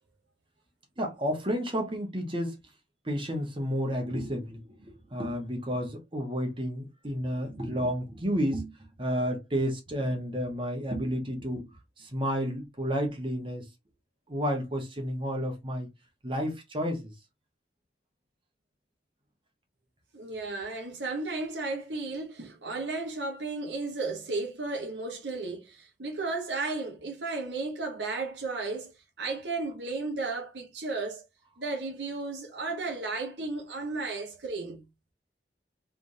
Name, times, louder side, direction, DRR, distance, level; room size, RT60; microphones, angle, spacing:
voice 1, 1.0-2.6 3.0-11.7 12.0-13.7 14.3-15.9 16.2-17.1, equal, 30° right, 1.3 m, -31 dB
voice 2, 20.1-31.2 31.6-34.9, right 3 dB, 85° right, 1.1 m, -34 dB
3.5 x 3.4 x 2.7 m
head